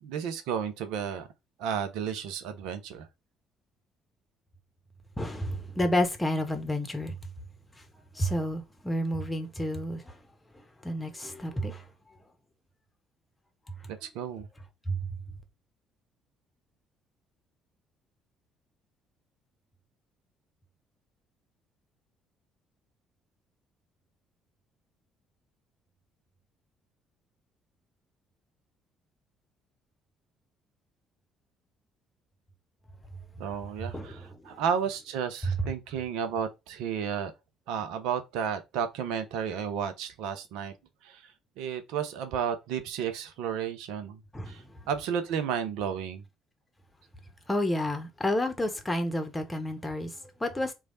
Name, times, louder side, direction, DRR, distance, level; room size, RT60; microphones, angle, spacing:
voice 1, 0.0-1.3 1.6-3.1 13.9-14.5 33.4-37.3 37.7-40.7 41.0-44.2 44.5-46.2, right 7 dB, 65° right, 0.5 m, -32 dB
voice 2, 5.2-7.2 8.1-10.2 10.8-11.9 14.9-15.0 33.9-34.6 44.3-44.7 47.5-50.7, left 1 dB, 15° left, 1.1 m, -30 dB
3.1 x 2.4 x 4.0 m
figure-of-eight pair, 50°, 0 cm